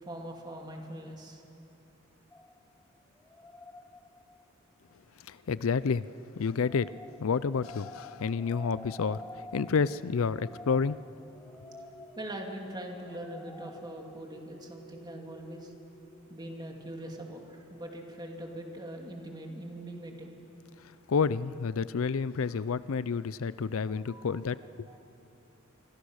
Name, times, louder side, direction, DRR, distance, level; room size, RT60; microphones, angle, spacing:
voice 1, 0.0-1.4 12.2-15.7 16.3-20.4 23.7-24.4 24.9-25.0, right 1 dB, 20° right, 1 dB, 2.7 m, -42 dB
sound 1, 2.3-4.6 6.5-14.2, left 2 dB, 10° left, 0.7 m, -49 dB
voice 2, 5.2-6.9 7.2-11.0 20.8-24.9, left 5 dB, 75° left, 17 dB, 0.5 m, -30 dB
sound 2, 10.1-17.3, right 2 dB, 65° right, 4.1 m, -56 dB
26.5 x 25.0 x 6.5 m, 2.9 s
head